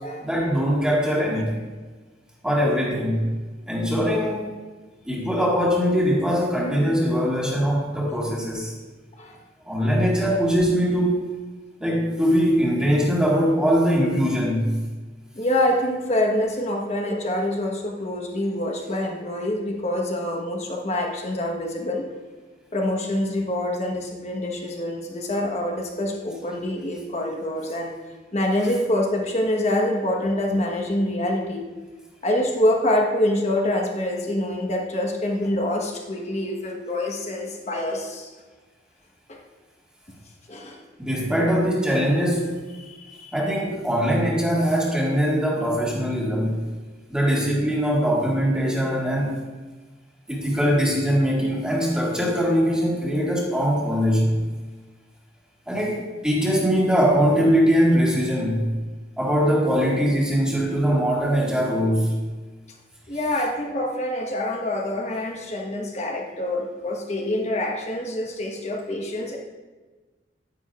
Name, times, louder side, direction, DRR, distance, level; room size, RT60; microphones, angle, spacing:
voice 1, 0.2-1.6 2.4-3.3 3.7-4.4 5.0-8.7 9.6-11.3 11.8-14.8 41.0-42.6 43.3-46.7 47.1-49.4 50.3-54.4 55.7-58.8 59.2-62.2, equal, 5° right, -4 dB, 1.7 m, -22 dB
voice 2, 15.3-22.1 22.7-27.9 28.3-31.6 32.2-38.3 39.3-39.4 40.5-40.8 42.8-43.4 63.1-69.4, left 1 dB, 35° left, 1 dB, 1.2 m, -26 dB
10.0 x 9.8 x 2.5 m, 1.3 s
head